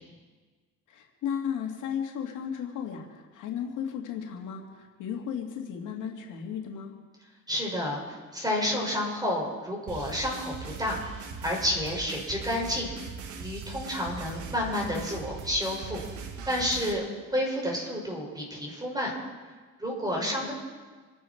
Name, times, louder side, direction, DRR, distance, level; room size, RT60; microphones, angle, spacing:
voice 1, 0.9-7.0 20.2-20.5, left 8 dB, 85° left, 2 dB, 2.2 m, -35 dB
voice 2, 7.5-8.0 8.3-11.0 11.4-12.9 13.3-16.0 16.4-17.0 17.3-19.1 19.8-20.5, left 1 dB, 15° right, -2 dB, 6.1 m, -30 dB
sound 1, 9.9-16.9, right 5 dB, 75° right, 1.8 m, -40 dB
27.5 x 10.0 x 4.6 m, 1.4 s
cardioid pair, 90°, 30 cm